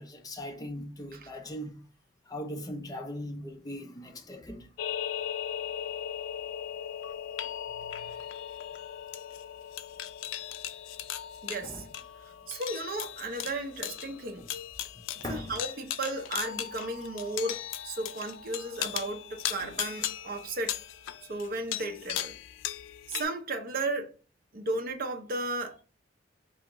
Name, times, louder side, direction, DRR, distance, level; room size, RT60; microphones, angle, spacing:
voice 1, 0.0-1.8 2.3-4.7 11.6-11.9 14.4-14.5 14.9-15.6, left 1 dB, 20° left, 0.5 m, -40 dB
sound 1, 4.8-23.2, left 10 dB, 85° left, 0.3 m, -37 dB
voice 2, 7.7-8.1 11.4-11.9 12.5-14.5 15.3-20.8 21.3-22.4 23.1-24.1 24.5-25.8, right 2 dB, 50° right, 0.6 m, -34 dB
2.8 x 2.8 x 3.5 m
head